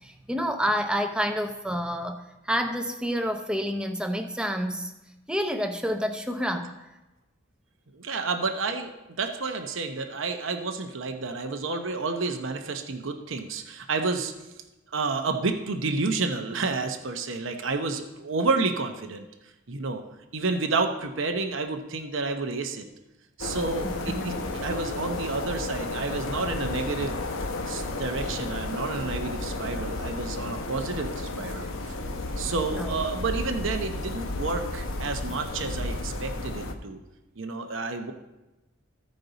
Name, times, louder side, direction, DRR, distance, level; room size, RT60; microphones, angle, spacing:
voice 1, 0.0-4.9 5.3-6.7 23.8-24.4 32.7-32.9, equal, 5° right, 5 dB, 0.6 m, -29 dB
voice 2, 7.9-8.9 9.2-14.3 14.9-19.3 19.7-20.0 20.3-22.8 23.4-27.2 27.7-31.7 32.4-37.0 37.4-38.1, right 3 dB, 65° right, 5 dB, 0.8 m, -30 dB
sound 1, 23.4-36.7, left 2 dB, 75° left, 0.9 m, -33 dB
15.0 x 5.3 x 4.0 m, 1.0 s
head